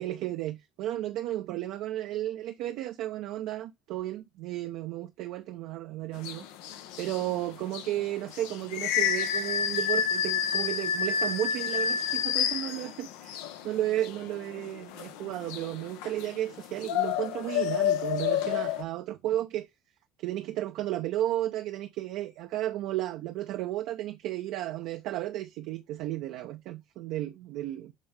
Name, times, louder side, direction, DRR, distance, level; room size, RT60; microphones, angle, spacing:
voice 1, 0.0-6.4 7.0-19.7 20.2-27.9, right 14 dB, 65° right, 0.7 m, -33 dB
sound 1, 6.2-18.8, left 8 dB, 70° left, 0.9 m, -30 dB
7.5 x 4.2 x 3.4 m
hypercardioid pair, 60°, 0 cm